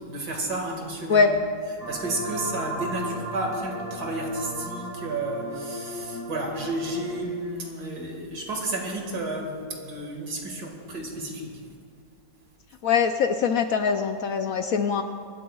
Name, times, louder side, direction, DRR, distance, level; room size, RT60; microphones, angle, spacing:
voice 1, 0.1-1.2 1.9-11.6, right 2 dB, 65° right, 1 dB, 2.5 m, -32 dB
sound 1, 1.8-7.2, right 1 dB, 10° left, 2.7 m, -35 dB
voice 2, 12.8-15.0, left 5 dB, 65° left, 6 dB, 0.9 m, -22 dB
25.5 x 12.5 x 2.3 m, 2.3 s
omnidirectional pair, 1.8 m